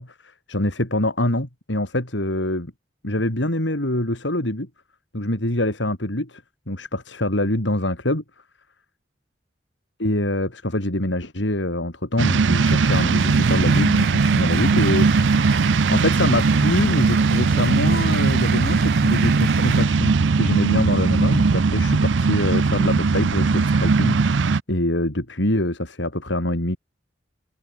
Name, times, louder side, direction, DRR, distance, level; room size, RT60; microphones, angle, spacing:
voice 1, 0.0-2.7 3.0-4.7 5.1-8.2 10.0-15.5 15.9-26.8, left 1 dB, 80° left, 4.7 m, -25 dB
sound 1, 12.2-24.6, right 4 dB, 85° right, 0.6 m, -19 dB
sound 2, 12.4-19.9, right 7 dB, 55° right, 3.1 m, -33 dB
head